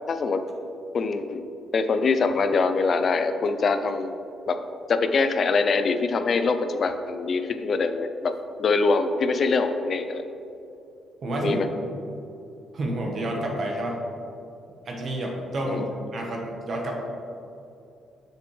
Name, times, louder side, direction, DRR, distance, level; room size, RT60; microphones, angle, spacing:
voice 1, 0.1-0.4 0.9-1.4 1.7-4.1 4.5-4.6 4.9-8.3 8.6-10.3 11.4-11.7 15.7-15.9, left 4 dB, 50° left, 9 dB, 0.5 m, -24 dB
voice 2, 11.2-11.6 12.7-14.0 14.8-16.9, right 1 dB, 55° right, 0 dB, 1.3 m, -29 dB
7.3 x 6.8 x 3.3 m, 2.7 s
cardioid pair, 90°, 0 cm